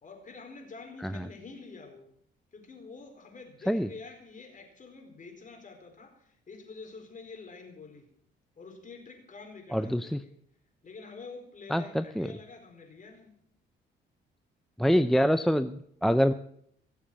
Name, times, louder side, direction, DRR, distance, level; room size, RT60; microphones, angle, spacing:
voice 1, 0.0-2.1 2.5-8.1 8.6-10.3 10.8-13.3, left 4 dB, 40° left, 3 dB, 4.4 m, -47 dB
voice 2, 9.7-10.2 11.7-12.3 14.8-16.3, equal, ahead, 11 dB, 0.5 m, -25 dB
17.5 x 7.3 x 7.5 m, 0.69 s
cardioid pair, 90°, 20 cm